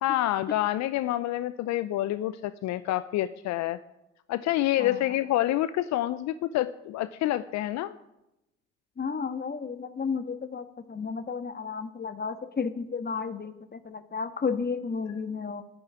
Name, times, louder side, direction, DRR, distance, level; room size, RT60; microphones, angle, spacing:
voice 1, 0.0-3.8 4.3-8.0, left 14 dB, 65° left, 15 dB, 0.7 m, -27 dB
voice 2, 9.0-15.6, left 5 dB, 35° left, 11 dB, 1.7 m, -33 dB
12.0 x 10.5 x 9.7 m, 0.92 s
hypercardioid pair, 50°, 30 cm